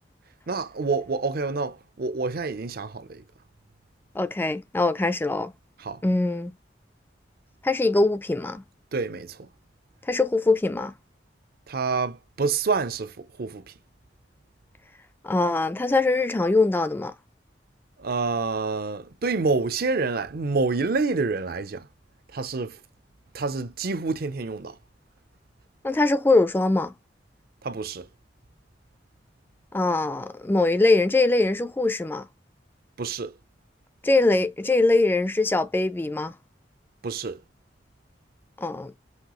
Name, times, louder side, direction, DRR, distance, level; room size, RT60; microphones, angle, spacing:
voice 1, 0.5-3.2 5.8-6.0 8.9-9.5 11.7-13.6 18.0-21.9 22.3-22.8 23.3-24.8 27.6-28.1 33.0-33.3 37.0-37.4, right 4 dB, 55° right, 0.6 m, -27 dB
voice 2, 4.2-5.5 6.0-6.5 7.6-8.6 10.1-10.9 15.2-17.1 25.8-26.9 29.7-32.2 34.0-36.3 38.6-38.9, left 2 dB, 10° left, 0.3 m, -22 dB
5.7 x 2.8 x 3.0 m
head